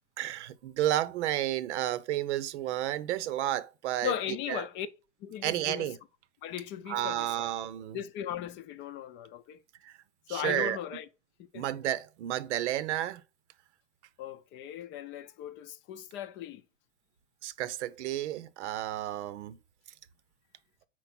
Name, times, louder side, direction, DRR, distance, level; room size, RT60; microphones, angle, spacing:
voice 1, 0.2-4.1 4.5-4.6 5.4-6.0 6.9-8.0 9.8-9.9 10.3-10.8 11.5-13.2 17.4-19.6, right 13 dB, 80° right, 0.8 m, -31 dB
voice 2, 4.0-4.9 5.2-5.9 6.4-7.5 7.9-9.6 10.3-11.1 11.4-11.7 14.2-16.6, left 10 dB, 35° left, 0.5 m, -37 dB
4.6 x 4.5 x 5.9 m
supercardioid pair, 135°, 34 cm